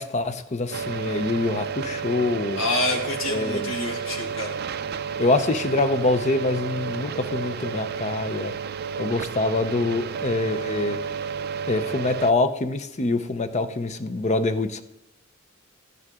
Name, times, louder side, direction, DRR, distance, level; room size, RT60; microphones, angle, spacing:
voice 1, 0.0-2.6 3.3-3.7 5.2-8.5 9.0-11.0 11.7-14.8, left 2 dB, 35° left, 10 dB, 0.6 m, -25 dB
sound 1, 0.7-12.3, right 6 dB, 50° right, 0.4 m, -31 dB
voice 2, 2.6-4.5, left 2 dB, 75° left, -2 dB, 1.8 m, -27 dB
13.0 x 9.5 x 3.6 m, 0.88 s
head